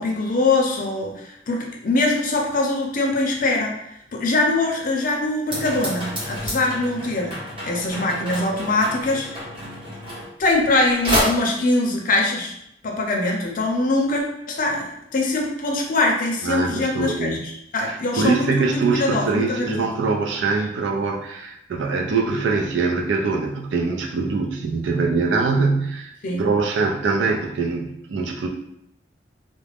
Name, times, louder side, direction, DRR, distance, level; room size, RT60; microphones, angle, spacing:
voice 1, 0.0-3.7 4.1-7.3 7.7-9.4 10.4-12.5 12.8-19.9 26.2-26.5, left 2 dB, 50° left, 0 dB, 0.5 m, -23 dB
sound 1, 5.5-10.8 11.0-11.2, equal, 30° right, 1.1 m, -29 dB
voice 2, 16.4-17.4 17.8-26.1 26.4-28.5, right 4 dB, 70° right, 1 dB, 0.4 m, -23 dB
2.4 x 2.0 x 3.3 m, 0.78 s
head